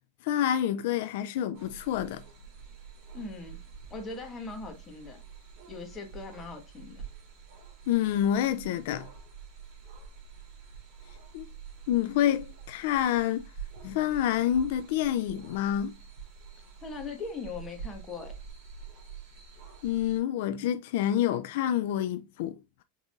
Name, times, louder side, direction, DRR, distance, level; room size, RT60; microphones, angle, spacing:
voice 1, 0.2-2.2 7.9-9.1 11.3-11.5 11.9-13.5 13.8-16.0 19.8-22.8, left 11 dB, 65° left, 0.3 m, -28 dB
sound 1, 1.5-20.2, right 6 dB, 45° right, 2.6 m, -47 dB
voice 2, 3.1-3.6 3.9-5.2 5.7-7.0 16.8-18.3, left 4 dB, 20° left, 1.3 m, -40 dB
5.4 x 3.6 x 2.5 m
supercardioid pair, 140°, 0 cm